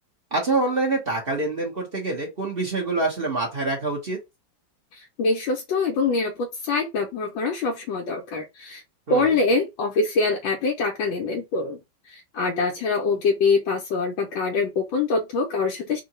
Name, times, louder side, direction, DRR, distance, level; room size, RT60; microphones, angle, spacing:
voice 1, 0.3-4.2 9.1-9.3, right 2 dB, 40° right, 1.0 m, -26 dB
voice 2, 4.9-8.8 9.1-11.8 12.1-16.0, left 4 dB, 85° left, 1.5 m, -24 dB
3.7 x 2.3 x 4.1 m
omnidirectional pair, 2.1 m